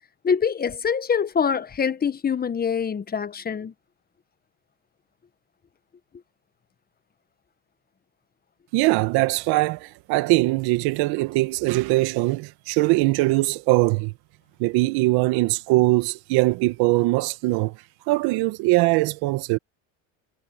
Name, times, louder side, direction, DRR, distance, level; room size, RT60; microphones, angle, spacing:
voice 1, 0.2-3.7, left 6 dB, 25° left, 1.2 m, -24 dB
voice 2, 8.7-14.1 14.6-17.8 18.1-19.6, right 21 dB, 65° right, 2.0 m, -21 dB
supercardioid pair, 100°, 40 cm